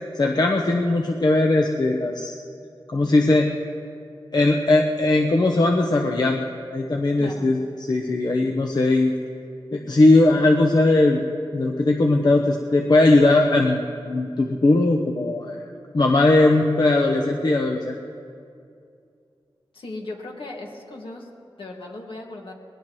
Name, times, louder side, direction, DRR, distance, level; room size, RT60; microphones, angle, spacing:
voice 1, 0.1-2.4 2.9-3.5 4.3-9.1 9.7-11.2 11.5-15.6 15.9-18.0, left 2 dB, 45° left, 2 dB, 0.9 m, -19 dB
voice 2, 7.2-7.5 19.7-22.5, left 2 dB, 70° left, 0 dB, 2.0 m, -37 dB
21.0 x 18.5 x 3.1 m, 2.4 s
wide cardioid pair, 90°, 9 cm